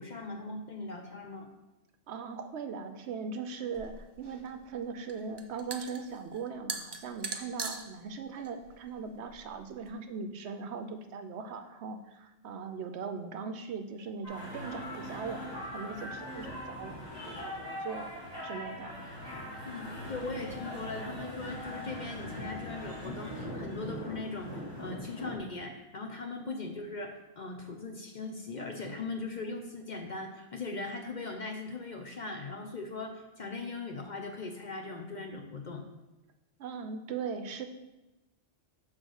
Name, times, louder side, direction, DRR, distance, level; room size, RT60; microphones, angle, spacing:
voice 1, 0.0-1.5 19.6-35.8, left 3 dB, 45° left, 3 dB, 0.7 m, -39 dB
voice 2, 2.1-17.0 17.3-18.1 18.4-18.9 36.6-37.7, right 5 dB, 70° right, 8 dB, 0.8 m, -39 dB
sound 1, 3.7-9.9, right 4 dB, 40° right, 0.4 m, -42 dB
sound 2, 14.2-25.4, left 1 dB, 30° left, 2.7 m, -41 dB
6.5 x 3.7 x 6.3 m, 1.0 s
omnidirectional pair, 1.3 m